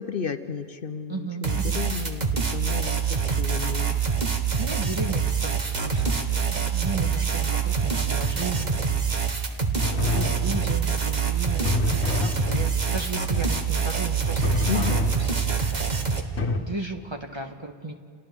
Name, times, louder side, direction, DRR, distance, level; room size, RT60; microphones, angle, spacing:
voice 1, 0.0-2.2 2.5-4.0 14.7-15.0, left 6 dB, 60° left, 8 dB, 1.0 m, -32 dB
voice 2, 1.1-1.8 4.6-8.7 9.9-15.9 16.6-17.9, right 3 dB, 25° right, 3 dB, 1.2 m, -35 dB
sound 1, 1.4-16.2, right 6 dB, 40° right, 1.4 m, -25 dB
sound 2, 9.8-11.0 11.7-13.0 14.4-15.8 16.4-16.6, left 3 dB, 80° left, 1.6 m, -28 dB
30.0 x 29.0 x 3.6 m, 2.1 s
omnidirectional pair, 1.1 m